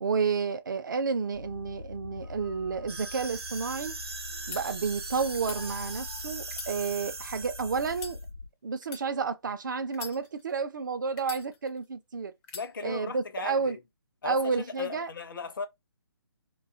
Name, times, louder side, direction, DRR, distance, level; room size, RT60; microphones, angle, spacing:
voice 1, 0.0-3.9 4.5-8.2 8.6-12.3 12.8-13.8 14.2-15.1, right 5 dB, 50° right, 0.4 m, -31 dB
sound 1, 1.3-8.5, left 3 dB, 85° left, 0.8 m, -44 dB
sound 2, 2.9-8.2, right 3 dB, 75° right, 0.8 m, -40 dB
sound 3, 4.5-4.6 5.3-5.6 6.4-7.4 7.9-8.2 8.8-9.1 9.9-10.6 11.2-11.9 12.4-12.7, left 5 dB, 15° left, 0.4 m, -42 dB
voice 2, 12.5-13.8 14.2-15.7, left 5 dB, 55° left, 0.6 m, -37 dB
2.5 x 2.3 x 2.4 m
figure-of-eight pair, 140°, 13 cm